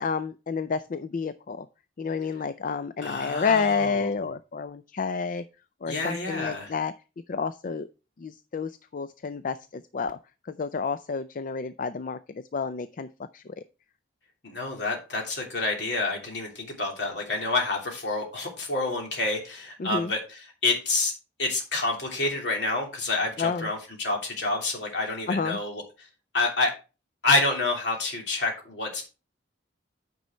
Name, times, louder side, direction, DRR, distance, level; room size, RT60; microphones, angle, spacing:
voice 1, 0.0-1.7 2.0-5.4 5.8-6.9 7.3-7.9 8.2-10.2 10.4-13.1 13.3-13.6 19.8-20.1 23.4-23.7 25.3-25.6, left 5 dB, 45° left, 12 dB, 0.4 m, -30 dB
voice 2, 3.0-4.1 5.9-6.7 14.4-20.2 20.6-21.1 21.4-25.8 26.3-26.7 27.2-29.0, left 2 dB, 65° left, 0 dB, 3.1 m, -28 dB
9.3 x 5.4 x 4.4 m, 0.32 s
head